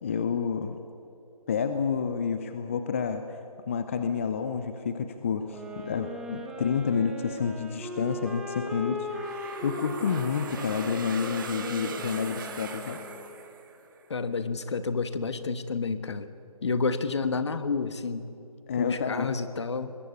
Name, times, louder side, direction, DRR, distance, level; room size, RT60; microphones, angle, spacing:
voice 1, 0.0-0.8 1.5-3.2 3.7-9.1 9.6-13.0 18.7-19.4, left 6 dB, 20° left, 9 dB, 0.7 m, -29 dB
sound 1, 5.4-13.3, left 1 dB, 5° right, 1.0 m, -39 dB
sound 2, 9.1-14.0, right 5 dB, 35° right, 2.0 m, -40 dB
voice 2, 14.1-16.3 16.6-18.3 18.8-20.0, left 4 dB, 50° left, 11 dB, 1.4 m, -30 dB
23.5 x 21.0 x 8.4 m, 2.7 s
figure-of-eight pair, 160°, 19 cm